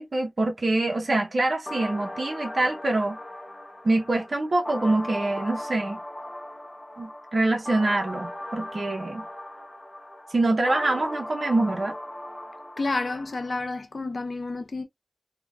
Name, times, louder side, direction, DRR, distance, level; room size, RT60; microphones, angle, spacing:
voice 1, 0.0-3.2 3.8-6.0 7.0-9.3 10.3-11.9, right 2 dB, 60° right, 0.6 m, -25 dB
sound 1, 1.7-13.7, left 1 dB, 15° left, 0.5 m, -38 dB
voice 2, 12.8-14.8, left 3 dB, 60° left, 0.6 m, -30 dB
3.7 x 2.1 x 2.2 m
wide cardioid pair, 75°, 0 cm